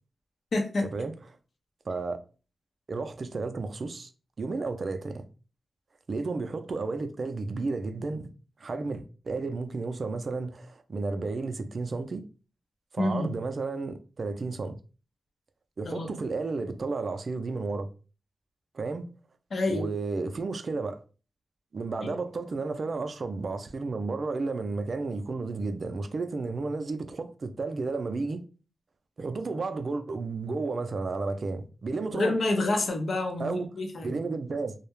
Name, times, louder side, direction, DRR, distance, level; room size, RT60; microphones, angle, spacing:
voice 1, 0.5-0.8 13.0-13.3 15.8-16.1 19.5-19.9 32.1-34.2, left 2 dB, 65° left, 0.6 m, -28 dB
voice 2, 1.9-2.2 2.9-4.1 4.4-5.2 6.1-8.3 8.6-12.2 12.9-14.8 15.8-17.9 18.7-19.1 19.7-21.0 21.7-28.4 29.2-32.3 33.4-33.7 34.0-34.7, right 3 dB, 60° right, 0.4 m, -32 dB
2.3 x 2.0 x 3.0 m
cardioid pair, 50°, 0 cm